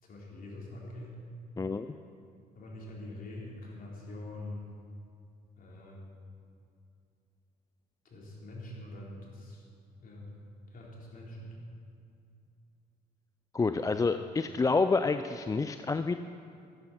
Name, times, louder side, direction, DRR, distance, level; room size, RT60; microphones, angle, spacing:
voice 1, 0.0-1.2 2.6-4.6 5.6-6.1 8.1-9.6 10.0-10.3 10.7-11.5 13.7-14.0, left 1 dB, 40° left, -3 dB, 4.0 m, -44 dB
voice 2, 1.6-1.9 13.5-16.2, left 4 dB, 15° left, 10 dB, 0.4 m, -28 dB
15.0 x 13.0 x 4.4 m, 2.5 s
figure-of-eight pair, 50°, 21 cm